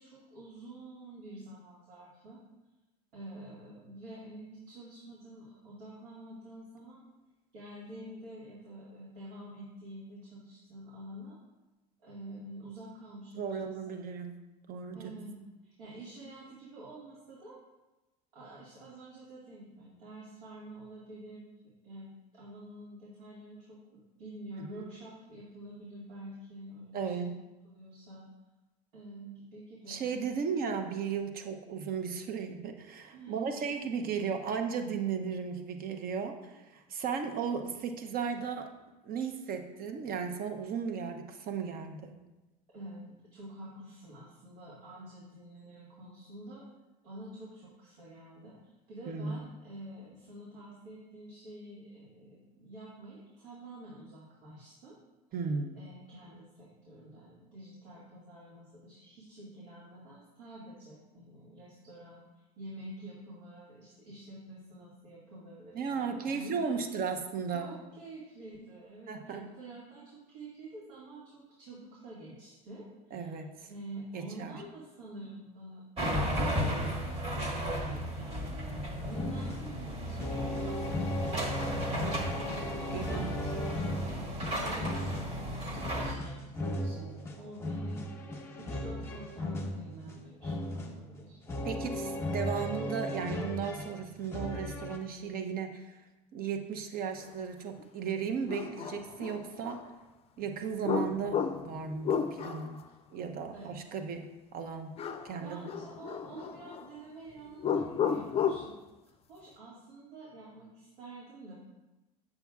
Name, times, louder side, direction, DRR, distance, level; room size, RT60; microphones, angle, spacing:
voice 1, 0.0-2.4 3.1-7.0 7.5-11.4 12.0-14.0 14.9-15.4 15.6-17.6 18.3-27.3 27.6-28.3 28.9-30.0 33.1-33.7 42.7-46.7 47.0-48.6 48.9-55.0 55.7-67.0 67.5-73.3 73.7-78.6 79.0-80.8 81.2-82.3 82.6-84.3 84.6-85.5 85.9-91.4 103.5-104.0 105.4-108.8 109.3-111.6, right 1 dB, 80° right, -7 dB, 2.1 m, -48 dB
voice 2, 13.4-14.4 14.7-15.2 24.6-24.7 26.9-27.3 29.9-38.7 39.0-42.2 49.1-49.4 55.3-55.8 65.7-67.8 69.1-69.5 73.1-73.7 74.1-74.5 82.9-83.3 91.6-96.0 96.3-99.8 100.4-102.8 103.1-104.9 105.2-105.7, right 6 dB, 45° right, 6 dB, 0.9 m, -35 dB
sound 1, 76.0-86.1, equal, 30° right, 1.5 m, -34 dB
sound 2, 79.1-95.0, left 1 dB, 15° left, 1.2 m, -37 dB
sound 3, 97.8-97.9 98.5-99.9 100.8-102.8 105.0-105.4 105.6-106.9 107.6-108.7, left 7 dB, 30° left, 0.5 m, -33 dB
8.0 x 6.9 x 2.4 m, 1.1 s
hypercardioid pair, 85°, 20 cm